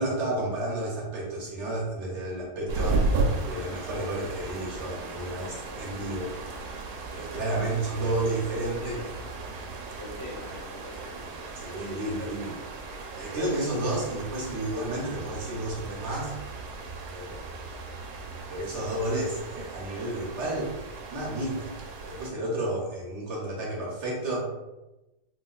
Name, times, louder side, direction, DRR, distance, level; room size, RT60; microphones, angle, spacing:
voice 1, 0.0-3.1 3.4-6.3 7.1-9.0 11.5-12.6 13.1-16.3 17.1-17.4 18.5-20.7 21.1-21.7 22.0-24.5, right 1 dB, 60° right, -4 dB, 0.8 m, -31 dB
sound 1, 2.7-22.3, right 3 dB, 75° right, 1.1 m, -35 dB
voice 2, 7.3-8.2 8.5-9.1 10.0-11.5, left 2 dB, 70° left, -11 dB, 1.5 m, -44 dB
3.6 x 2.4 x 2.3 m, 1.0 s
omnidirectional pair, 1.9 m